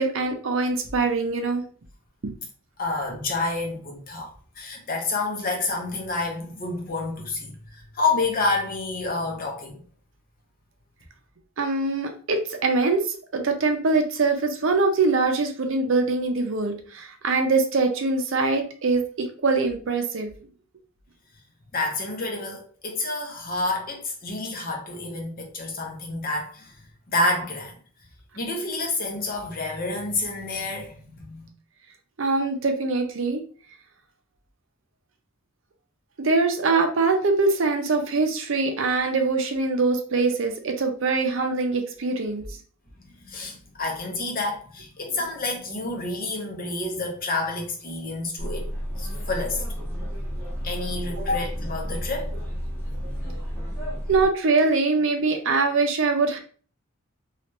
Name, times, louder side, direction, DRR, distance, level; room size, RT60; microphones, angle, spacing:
voice 1, 0.0-1.6 2.2-2.3 11.6-13.1 13.3-20.3 32.2-33.4 36.2-42.5 54.1-56.4, right 3 dB, 65° right, 0.6 m, -23 dB
voice 2, 2.8-9.8 21.7-26.7 27.1-27.8 28.3-31.5 43.0-48.7 49.0-49.6 50.6-52.3, left 2 dB, 45° left, 0.8 m, -29 dB
sound 1, 48.4-54.3, equal, 10° left, 1.3 m, -31 dB
2.9 x 2.4 x 3.0 m
head